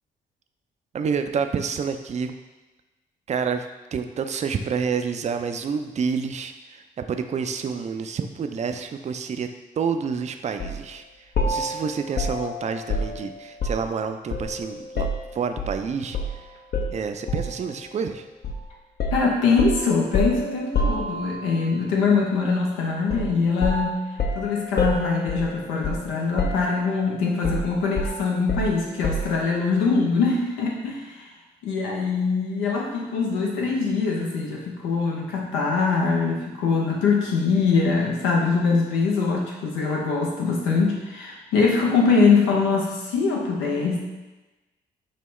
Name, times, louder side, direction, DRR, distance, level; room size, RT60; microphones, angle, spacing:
voice 1, 0.9-2.3 3.3-3.6 3.9-9.5 9.8-11.0 11.5-15.1 15.3-16.2 16.9-18.3, right 6 dB, 35° right, 7 dB, 0.4 m, -28 dB
sound 1, 10.6-10.8 11.4-14.0 14.3-15.8 16.1-16.4 16.7-17.6 18.4-18.6 19.0-21.6 23.1-23.4 23.6-26.1 26.4-27.0 27.4-29.4, left 2 dB, 55° left, 0.6 m, -28 dB
voice 2, 19.1-24.0 24.3-31.3 31.6-44.0, left 4 dB, 90° left, -2 dB, 0.7 m, -23 dB
5.5 x 2.1 x 3.1 m, 1.1 s
hypercardioid pair, 45°, 20 cm